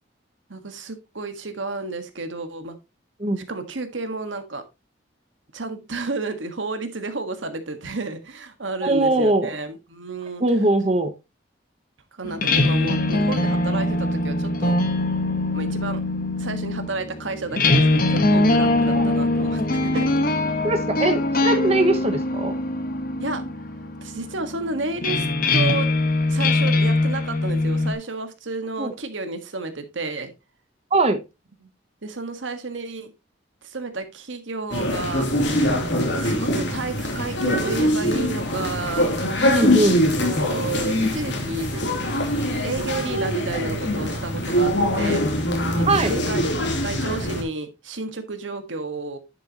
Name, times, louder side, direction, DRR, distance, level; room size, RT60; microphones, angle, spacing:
voice 1, 0.5-2.8 3.5-4.6 5.5-10.4 12.1-14.7 15.5-16.0 16.4-20.1 23.2-23.4 24.0-25.3 25.5-25.9 26.3-30.3 31.6-31.7 32.0-33.1 33.6-35.3 36.1-39.1 40.2-41.9 42.6-45.3 45.7-49.2, right 3 dB, 90° right, 8 dB, 1.6 m, -31 dB
voice 2, 8.8-9.5 10.4-11.1 18.9-19.1 20.6-22.6 28.8-28.9 30.9-31.2 39.5-40.0 45.9-46.2, right 2 dB, 35° right, 7 dB, 1.0 m, -21 dB
sound 1, 12.2-27.9, left 2 dB, 50° left, 1.3 m, -22 dB
sound 2, 34.7-47.4, left 1 dB, 65° left, 2.8 m, -23 dB
10.5 x 6.9 x 2.9 m, 0.25 s
head